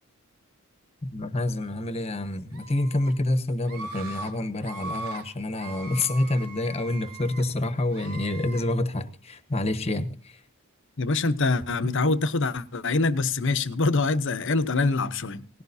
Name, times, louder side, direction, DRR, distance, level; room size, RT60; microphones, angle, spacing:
voice 1, 1.0-10.4 11.8-11.9, left 1 dB, 30° left, 1.1 m, -27 dB
Screaming, 2.5-3.1 3.6-4.3 4.6-5.2 5.6-7.4 7.9-8.6, right 2 dB, 85° right, 2.9 m, -39 dB
voice 2, 11.0-15.4, left 3 dB, 55° left, 0.9 m, -24 dB
18.5 x 16.0 x 2.7 m
head